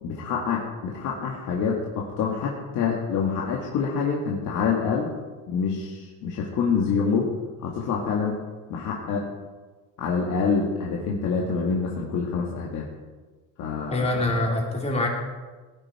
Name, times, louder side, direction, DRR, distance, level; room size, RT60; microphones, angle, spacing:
voice 1, 0.0-5.1 5.5-7.3 7.6-8.4 8.7-9.3 10.0-12.9 13.6-14.4, left 5 dB, 50° left, -2 dB, 2.1 m, -26 dB
voice 2, 13.9-15.1, left 2 dB, 15° left, 0 dB, 2.8 m, -24 dB
17.5 x 9.9 x 4.4 m, 1.3 s
cardioid pair, 125°, 38 cm